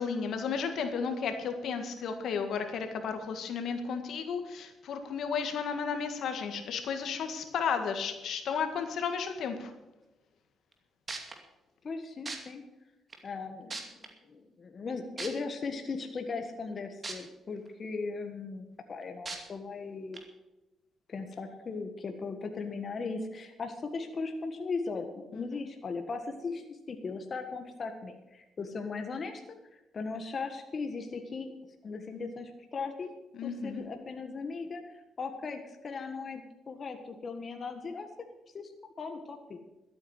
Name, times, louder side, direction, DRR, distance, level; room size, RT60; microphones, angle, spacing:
voice 1, 0.0-9.7 25.3-25.4 33.3-33.8, left 6 dB, 70° left, 7 dB, 1.8 m, -33 dB
sound 1, 10.7-10.8 11.1-11.3 12.3-12.4 13.1-13.2 13.7-14.1 15.2-15.3 17.0-17.1 17.7-17.8 19.3-19.4 20.1-20.2, right 3 dB, 30° right, 2.4 m, -37 dB
voice 2, 11.8-12.6 13.2-20.2 21.1-29.4 29.7-31.5 31.8-33.1 33.4-38.1 38.5-39.6, left 4 dB, 40° left, 5 dB, 1.6 m, -38 dB
13.0 x 8.7 x 8.2 m, 1.0 s
cardioid pair, 90°, 0 cm